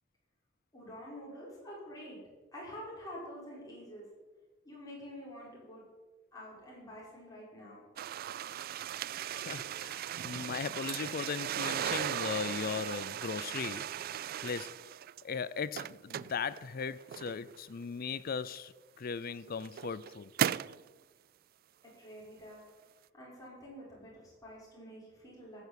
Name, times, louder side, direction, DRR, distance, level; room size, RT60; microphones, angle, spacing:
voice 1, 0.7-2.2 2.5-4.1 4.6-5.8 6.3-7.8 21.8-22.6 23.1-25.6, equal, 20° left, 5.7 m, -47 dB
sound 1, 8.0-15.2 15.6-17.6 18.5-18.6 19.3-20.8, right 10 dB, 50° right, 0.3 m, -37 dB
voice 2, 9.2-13.9 14.4-14.7 15.2-20.3, left 6 dB, 50° left, 0.5 m, -38 dB
14.5 x 7.0 x 8.4 m
head